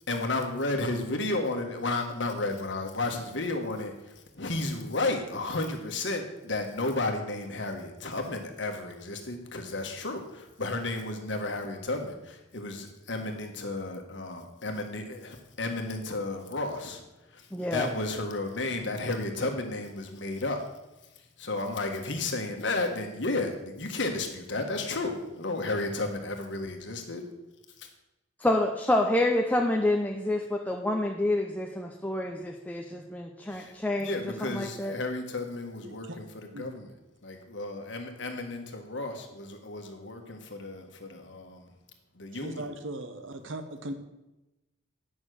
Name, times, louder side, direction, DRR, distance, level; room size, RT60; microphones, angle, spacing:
voice 1, 0.1-17.0 17.3-20.6 21.4-27.2 27.8-27.9 33.5-36.9 37.2-41.7 42.1-42.7, left 2 dB, 70° left, 4 dB, 1.6 m, -33 dB
voice 2, 17.5-17.9 28.4-35.0, left 1 dB, 10° left, 0 dB, 0.7 m, -28 dB
voice 3, 35.8-36.2 36.5-36.7 42.4-43.9, right 1 dB, 90° right, 8 dB, 1.1 m, -38 dB
9.8 x 6.3 x 6.5 m, 0.97 s
head